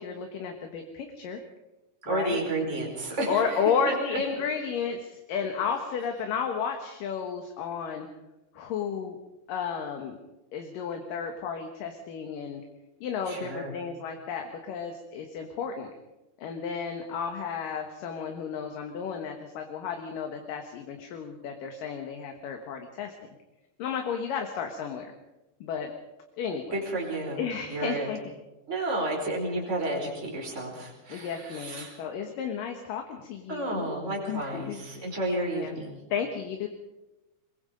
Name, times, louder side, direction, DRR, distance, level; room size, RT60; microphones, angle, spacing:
voice 1, 0.0-1.4 2.1-2.4 3.3-8.1 8.5-9.2 9.5-10.2 10.5-12.6 13.0-15.9 16.4-23.1 23.8-25.1 25.6-25.9 26.4-26.8 27.4-28.2 31.1-34.0 34.3-35.7 36.1-36.7, left 6 dB, 65° left, 4 dB, 2.8 m, -33 dB
voice 2, 2.0-3.9 13.3-13.7 26.7-27.4 27.7-28.1 28.7-32.0 33.5-36.0, right 2 dB, 15° right, 0 dB, 4.6 m, -31 dB
23.5 x 22.0 x 5.2 m, 1.0 s
omnidirectional pair, 4.6 m